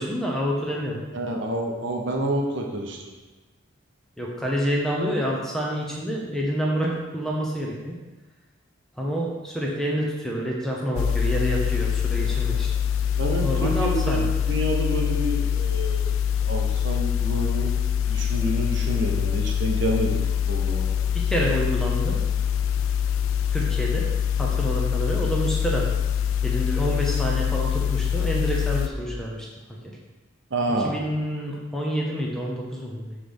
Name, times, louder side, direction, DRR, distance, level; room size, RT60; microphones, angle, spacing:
voice 1, 0.0-1.1 4.2-8.0 9.0-12.7 13.4-14.3 21.1-22.2 23.5-24.1 24.4-25.9 26.4-29.5 29.8-30.0 30.8-33.2, equal, ahead, -3 dB, 0.7 m, -28 dB
voice 2, 1.1-3.1 13.2-16.2 16.5-17.8 18.1-20.2 20.5-20.9 30.5-30.9, right 1 dB, 60° right, 1 dB, 0.8 m, -28 dB
sound 1, 11.0-28.9, left 8 dB, 75° left, 0.3 m, -24 dB
5.8 x 3.4 x 5.2 m, 1.2 s
head